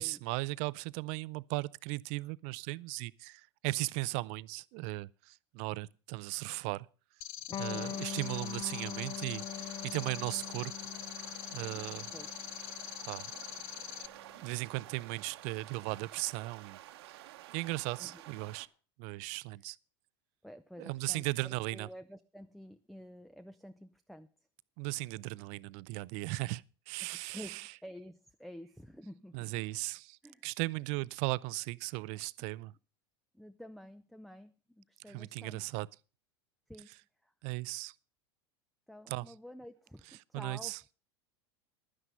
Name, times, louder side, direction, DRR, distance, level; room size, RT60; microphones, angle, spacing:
voice 1, 0.0-6.9 7.6-10.7 11.5-12.1 13.1-13.4 13.7-14.1 14.4-16.8 17.1-17.2 17.5-18.7 19.0-19.8 20.8-21.9 24.8-27.7 29.3-32.7 35.1-35.9 37.4-37.9 39.1-39.3 40.3-40.8, right 22 dB, 55° right, 0.5 m, -37 dB
sound 1, 7.2-14.1, left 14 dB, 60° left, 0.6 m, -44 dB
Electric guitar, 7.5-14.7, left 10 dB, 30° left, 0.8 m, -44 dB
voice 2, 7.5-7.9 12.1-12.3 18.0-18.2 20.4-24.3 27.0-29.5 30.2-30.5 33.3-35.6 36.7-36.9 37.2-37.3 38.9-40.8, equal, ahead, 0.5 m, -50 dB
sound 2, 7.8-18.7, right 14 dB, 70° right, 1.1 m, -51 dB
11.0 x 9.9 x 5.4 m
hypercardioid pair, 90°, 14 cm